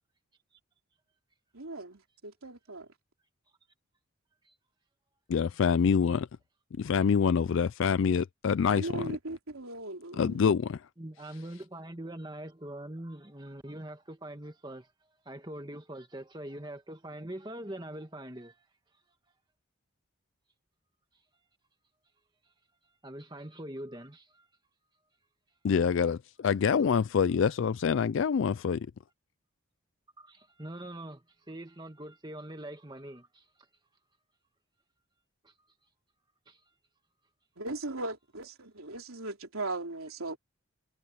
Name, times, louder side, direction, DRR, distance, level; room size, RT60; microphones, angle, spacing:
voice 1, 1.5-2.9 8.7-10.5 37.6-40.4, right 2 dB, 90° right, 3.4 m, -38 dB
voice 2, 5.3-6.3 6.8-9.1 10.1-10.8 25.6-28.9, left 6 dB, 65° left, 0.3 m, -26 dB
voice 3, 11.0-14.9 15.3-18.6 23.0-24.5 30.2-33.5 35.4-35.5 36.5-36.6, right 1 dB, 20° right, 1.6 m, -43 dB
head